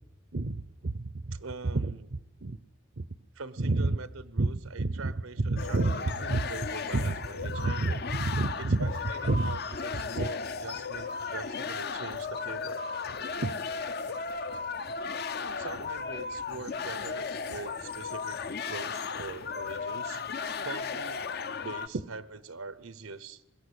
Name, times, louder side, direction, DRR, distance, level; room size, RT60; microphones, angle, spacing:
voice 1, 0.3-1.4 1.8-1.9 2.4-2.6 3.0-3.1 3.6-4.0 4.4-4.5 4.8-5.1 5.5-5.9 6.3-6.5 6.9-7.1 7.6-7.9 8.2-8.9 9.3-9.5 10.2-10.3 13.4-13.5, right 2 dB, 55° right, 15 dB, 0.6 m, -28 dB
voice 2, 1.3-2.1 3.3-8.0 8.6-12.8 15.6-18.4 18.7-20.2 20.6-21.2 21.6-23.4, right 4 dB, 90° right, 16 dB, 1.0 m, -43 dB
sound 1, 5.6-21.9, left 5 dB, 50° left, 0.7 m, -35 dB
21.5 x 16.5 x 8.3 m, 1.0 s
head